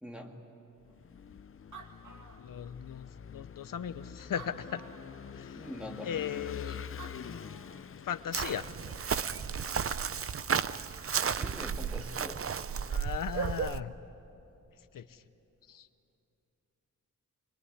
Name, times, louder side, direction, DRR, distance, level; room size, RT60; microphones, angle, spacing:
voice 1, 0.0-0.4 5.5-6.4 11.2-12.5, left 1 dB, 5° right, 2 dB, 2.3 m, -44 dB
Vehicle / Engine, 0.8-10.6, left 7 dB, 40° left, 0.5 m, -46 dB
Animal, 1.3-1.4 1.5-3.0 3.6-3.7 4.2-5.2 6.7-6.8 7.0-7.9, right 5 dB, 65° right, 2.4 m, -51 dB
voice 2, 2.4-4.8 5.4-5.6 6.0-6.8 8.0-8.7 12.9-13.9 14.9-15.2 15.7-15.9, left 8 dB, 90° left, 11 dB, 0.8 m, -37 dB
Chirp tweet, 8.3-13.8, right 7 dB, 45° right, 0.6 m, -33 dB
25.0 x 22.5 x 9.9 m, 2.9 s
wide cardioid pair, 135°, 32 cm